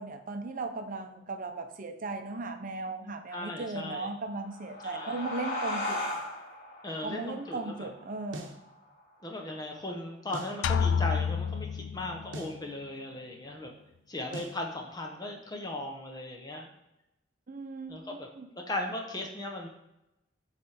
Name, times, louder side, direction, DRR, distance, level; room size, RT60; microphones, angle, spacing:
voice 1, 0.0-6.2 7.0-8.6 17.5-18.5, right 3 dB, 45° right, 6 dB, 0.6 m, -37 dB
voice 2, 3.3-4.1 4.8-5.2 6.8-7.9 9.2-13.7 14.1-16.7 17.9-18.3 18.6-19.7, left 1 dB, 20° left, 1 dB, 0.7 m, -37 dB
sound 1, 4.2-9.4, left 1 dB, 45° left, 1.9 m, -38 dB
sound 2, 8.3-8.6 10.3-10.6 12.3-12.6 14.3-14.6, right 1 dB, 75° right, 0.8 m, -41 dB
sound 3, 10.6-12.5, left 6 dB, 75° left, 0.3 m, -29 dB
8.3 x 3.3 x 4.2 m, 0.90 s
head